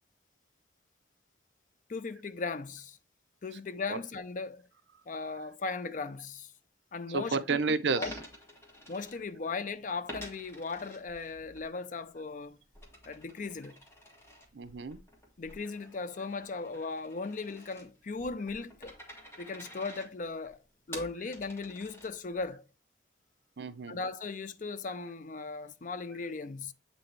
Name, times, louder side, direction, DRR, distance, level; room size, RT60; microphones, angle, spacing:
voice 1, 1.9-3.0 3.4-4.7 5.1-6.5 6.9-7.6 8.0-8.1 8.9-12.6 13.0-13.8 15.4-19.0 19.4-20.6 20.9-22.7 23.9-26.7, left 4 dB, 45° left, 0.5 m, -37 dB
voice 2, 7.1-8.2 14.5-15.0 23.6-24.0, right 4 dB, 75° right, 0.6 m, -31 dB
Coin (dropping), 8.0-9.6 10.1-11.7 12.0-22.5, equal, 15° left, 1.5 m, -49 dB
7.9 x 4.1 x 3.2 m
head